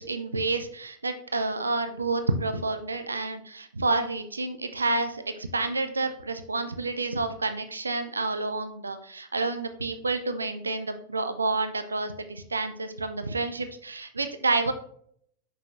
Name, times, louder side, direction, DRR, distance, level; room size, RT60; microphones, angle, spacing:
voice 1, 0.0-14.7, right 3 dB, 75° right, 9 dB, 0.6 m, -29 dB
6.0 x 5.5 x 3.1 m, 0.65 s
figure-of-eight pair, 90°, 0 cm